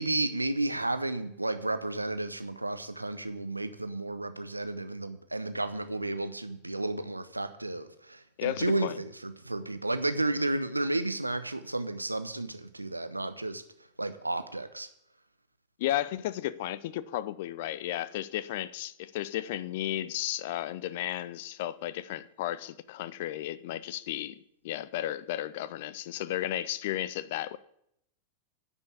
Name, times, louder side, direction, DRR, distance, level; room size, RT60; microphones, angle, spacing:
voice 1, 0.0-13.6 14.0-14.9, right 2 dB, 85° right, 0.8 m, -32 dB
voice 2, 8.4-9.0 15.8-27.6, left 13 dB, 50° left, 0.5 m, -34 dB
10.0 x 5.4 x 8.2 m
figure-of-eight pair, 90°, 0 cm